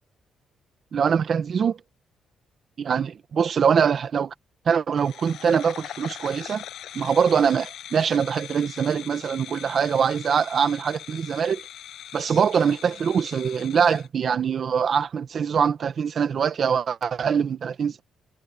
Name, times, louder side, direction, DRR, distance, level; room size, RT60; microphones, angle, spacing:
voice 1, 0.9-1.8 2.8-4.3 4.7-6.6 6.9-11.6 12.1-18.0, right 7 dB, 50° right, 1.9 m, -23 dB
sound 1, 5.0-14.1, left 11 dB, 75° left, 7.3 m, -41 dB
cardioid pair, 120°, 0 cm